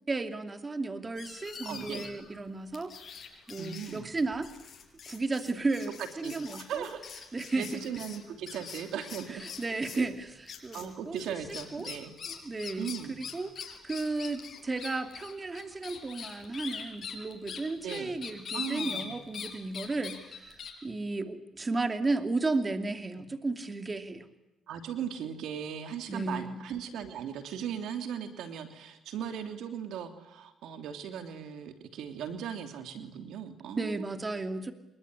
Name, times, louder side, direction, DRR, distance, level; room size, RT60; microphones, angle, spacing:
voice 1, 0.1-2.9 3.5-4.5 5.1-6.8 7.3-7.8 9.3-10.3 10.6-11.2 11.7-11.9 12.4-13.5 13.8-24.3 26.1-26.6 33.8-34.7, right 3 dB, 25° right, 7 dB, 2.7 m, -34 dB
sound 1, 1.2-2.3 2.7-10.1 10.5-10.9 11.2-19.5 19.7-20.7, left 7 dB, 55° left, 6.9 m, -42 dB
voice 2, 1.6-2.1 3.6-4.1 6.2-7.2 7.6-9.6 9.9-10.1 10.7-12.1 12.8-13.2 17.8-18.1 18.5-19.1 24.7-34.1, right 8 dB, 80° right, 7 dB, 3.1 m, -38 dB
27.5 x 22.0 x 9.8 m, 0.94 s
cardioid pair, 90°, 0 cm